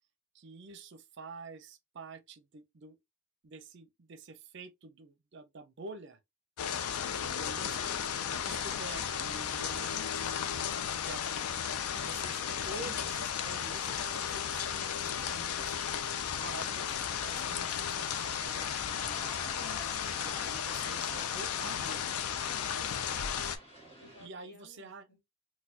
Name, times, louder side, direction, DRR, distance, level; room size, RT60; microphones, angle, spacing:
voice 1, 0.3-3.0 3.4-6.2 6.9-7.9 8.3-10.3 11.0-11.2 12.0-15.8 16.4-19.5 20.2-22.4 24.2-25.1, right 3 dB, 50° right, 0.5 m, -48 dB
sound 1, 6.6-23.6, left 8 dB, 80° left, 0.4 m, -34 dB
voice 2, 9.9-10.5 19.6-20.4 22.6-23.0 24.0-25.2, left 2 dB, 45° left, 1.6 m, -55 dB
sound 2, 18.2-24.3, equal, 25° left, 1.9 m, -51 dB
4.1 x 2.2 x 2.7 m
head